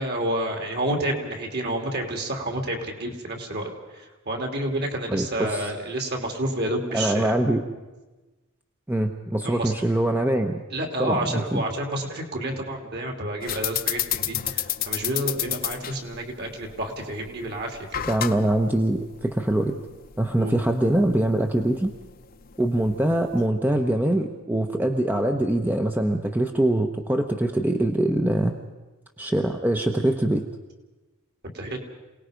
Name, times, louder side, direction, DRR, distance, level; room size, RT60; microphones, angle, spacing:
voice 1, 0.0-7.3 9.4-9.7 10.7-18.0 20.4-20.6 31.4-31.8, right 1 dB, 50° right, 3 dB, 3.1 m, -29 dB
voice 2, 5.1-5.7 6.9-7.6 8.9-10.6 11.0-11.6 18.1-19.8 20.2-21.9 22.6-28.5 29.2-30.4, right 1 dB, 10° right, 4 dB, 0.9 m, -23 dB
sound 1, 13.4-23.5, left 11 dB, 45° left, 0.9 m, -32 dB
27.5 x 18.5 x 5.2 m, 1.2 s
head